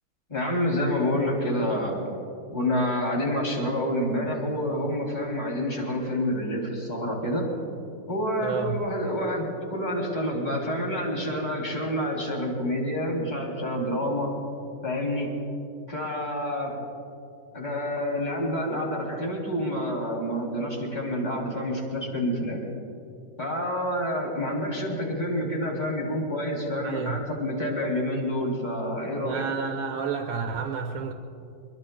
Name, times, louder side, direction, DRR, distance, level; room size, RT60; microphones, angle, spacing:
voice 1, 0.3-2.2 2.5-7.4 8.1-14.3 14.8-15.3 15.9-16.8 17.5-22.6 23.4-29.5, equal, 20° left, -1 dB, 2.9 m, -28 dB
voice 2, 8.4-8.8 26.8-27.2 29.2-31.1, right 6 dB, 80° right, 2 dB, 1.6 m, -30 dB
24.5 x 22.5 x 2.2 m, 2.6 s
omnidirectional pair, 2.3 m